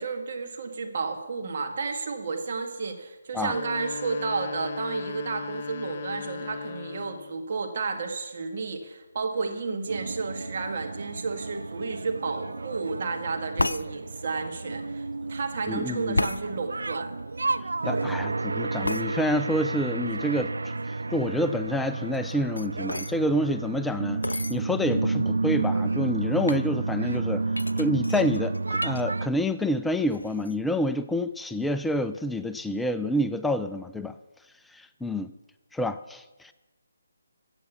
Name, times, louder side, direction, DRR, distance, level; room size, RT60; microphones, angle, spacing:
voice 1, 0.0-17.1, right 4 dB, 45° right, 4 dB, 2.0 m, -32 dB
sound 1, 3.3-7.4, left 5 dB, 40° left, 0.7 m, -37 dB
sound 2, 9.9-29.3, right 3 dB, 70° right, 0.3 m, -31 dB
sound 3, 13.6-13.9 16.1-16.4 18.8-19.1 22.1-23.1 24.2-24.6 25.3-25.4 25.5-25.9 26.5-26.7 27.5-29.0 29.4-29.8 30.1-30.5, left 2 dB, 85° left, 0.5 m, -31 dB
voice 2, 15.7-16.2 17.8-20.7 21.1-27.4 27.8-34.1 34.7-35.3 35.7-36.5, equal, 5° left, 10 dB, 0.3 m, -28 dB
15.0 x 8.2 x 7.0 m, 1.1 s
figure-of-eight pair, 150°, 0 cm